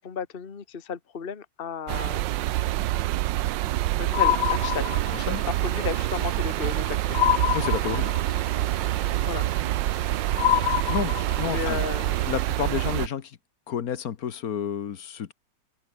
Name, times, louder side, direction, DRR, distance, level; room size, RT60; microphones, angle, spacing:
voice 1, 0.0-2.6 4.0-4.9 5.5-7.2 9.2-9.4 11.5-12.1, left 6 dB, 35° left, 1.4 m, -34 dB
sound 1, 1.9-13.1, right 16 dB, 90° right, 1.3 m, -27 dB
sound 2, 4.1-5.4 7.1-8.4 10.4-11.6, left 12 dB, 80° left, 1.5 m, -25 dB
Vehicle / Engine, 4.4-12.4, right 4 dB, 30° right, 1.2 m, -41 dB
voice 2, 5.1-5.4 7.5-8.1 10.9-11.8 12.3-13.4 13.7-15.3, left 8 dB, 55° left, 1.5 m, -30 dB
open air
omnidirectional pair, 1.9 m